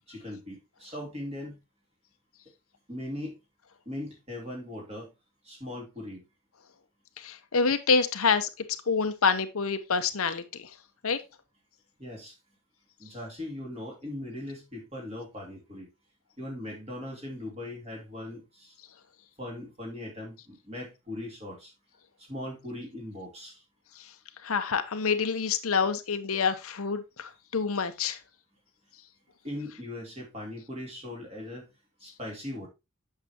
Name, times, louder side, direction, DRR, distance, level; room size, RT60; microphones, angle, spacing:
voice 1, 0.1-1.6 2.9-3.4 3.9-5.1 5.4-6.3 12.0-12.3 13.0-15.9 16.4-18.8 19.4-21.7 22.2-23.6 29.4-31.7 32.0-32.7, left 1 dB, 25° right, 2.6 m, -39 dB
voice 2, 7.2-8.5 8.9-10.7 11.0-11.2 24.0-24.1 24.4-28.2, left 5 dB, 75° left, 0.8 m, -27 dB
8.4 x 6.5 x 2.9 m
head